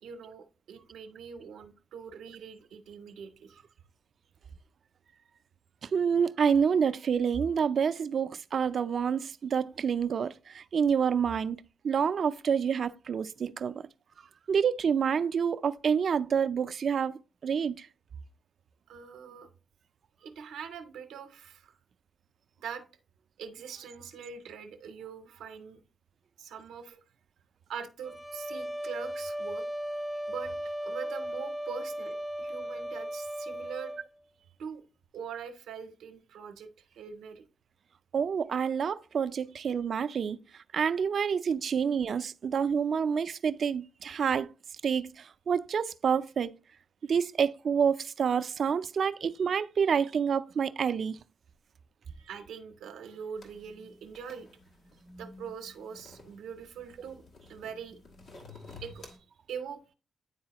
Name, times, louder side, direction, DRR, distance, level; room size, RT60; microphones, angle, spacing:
voice 1, 0.0-3.6 18.9-19.5 20.2-21.7 22.6-22.8 23.4-25.8 26.4-27.0 27.7-29.6 30.3-33.9 34.6-34.8 35.1-36.7 37.0-37.4 39.6-39.7 47.0-47.1 52.1-54.5 55.2-57.2 57.5-58.0 58.5-59.2 59.5-59.9, right 7 dB, 85° right, 0.7 m, -43 dB
voice 2, 5.8-13.8 14.5-17.9 38.1-40.4 40.7-44.5 44.8-46.5 47.1-51.2, right 7 dB, 65° right, 0.4 m, -28 dB
sound 1, 28.0-34.1, equal, ahead, 0.4 m, -36 dB
sound 2, 53.4-59.2, left 2 dB, 75° left, 1.4 m, -52 dB
9.6 x 4.0 x 2.9 m
supercardioid pair, 55°, 0 cm